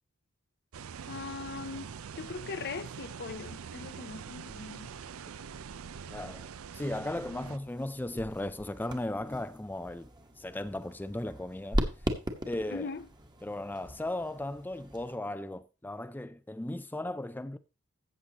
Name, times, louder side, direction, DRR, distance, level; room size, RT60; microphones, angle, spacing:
sound 1, 0.7-7.6, right 6 dB, 75° right, 0.5 m, -44 dB
voice 1, 1.1-4.9 12.7-13.0, left 4 dB, 50° left, 0.6 m, -40 dB
voice 2, 6.1-10.1 10.4-11.8 12.5-12.9 13.4-17.6, left 1 dB, 10° left, 0.4 m, -36 dB
sound 2, 7.4-15.2, equal, 20° right, 1.3 m, -38 dB
14.0 x 8.1 x 2.9 m
head